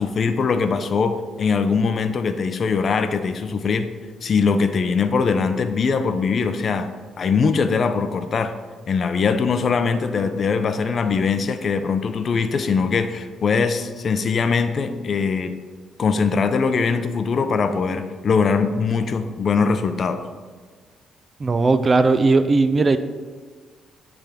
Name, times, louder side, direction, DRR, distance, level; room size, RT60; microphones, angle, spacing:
voice 1, 0.0-3.9 4.2-6.9 7.2-8.5 8.9-15.5 16.0-20.2, left 5 dB, 50° left, 9 dB, 0.5 m, -21 dB
voice 2, 21.4-23.0, right 3 dB, 35° right, 11 dB, 0.4 m, -17 dB
9.8 x 3.5 x 3.5 m, 1.5 s
cardioid pair, 90°, 0 cm